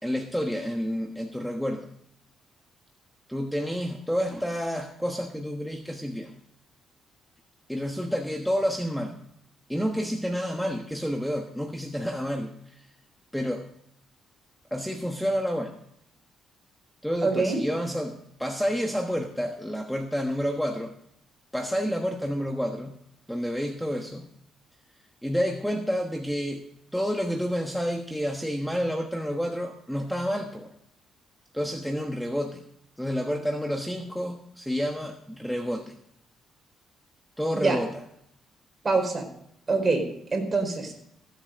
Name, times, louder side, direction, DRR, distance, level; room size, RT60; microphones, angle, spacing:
voice 1, 0.0-1.9 3.3-6.3 7.7-9.2 9.7-12.8 13.3-13.7 14.7-15.7 17.0-20.9 21.5-22.9 23.3-24.3 25.2-26.6 26.9-30.7 31.5-32.6 33.0-35.9 37.4-38.0, equal, ahead, 3 dB, 1.3 m, -29 dB
voice 2, 17.2-17.6 37.5-37.8 38.8-39.3 39.7-40.0 40.3-40.9, right 3 dB, 30° right, 3 dB, 4.3 m, -24 dB
16.0 x 7.9 x 5.2 m, 0.71 s
cardioid pair, 90°, 0 cm